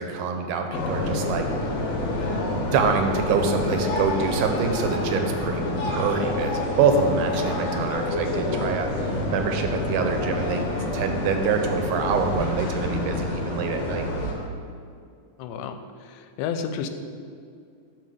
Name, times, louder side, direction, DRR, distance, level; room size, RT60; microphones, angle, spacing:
voice 1, 0.0-1.5 2.6-10.6 10.9-14.1, right 5 dB, 85° right, 5 dB, 2.3 m, -25 dB
sound 1, 0.7-14.3, left 2 dB, 65° left, 2.3 m, -28 dB
voice 2, 15.4-16.9, left 7 dB, 90° left, 8 dB, 2.1 m, -32 dB
8.5 x 4.1 x 6.7 m, 2.3 s
omnidirectional pair, 3.6 m